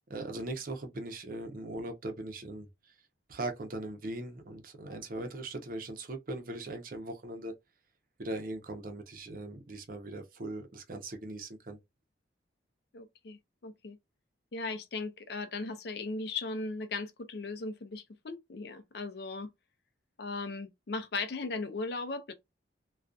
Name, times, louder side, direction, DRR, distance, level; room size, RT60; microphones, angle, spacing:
voice 1, 0.1-2.9 3.3-7.5 8.2-11.8, right 2 dB, 45° right, 0.6 m, -40 dB
voice 2, 12.9-14.0 14.5-19.5 20.2-22.3, left 3 dB, 60° left, 0.5 m, -37 dB
2.5 x 2.3 x 2.3 m
head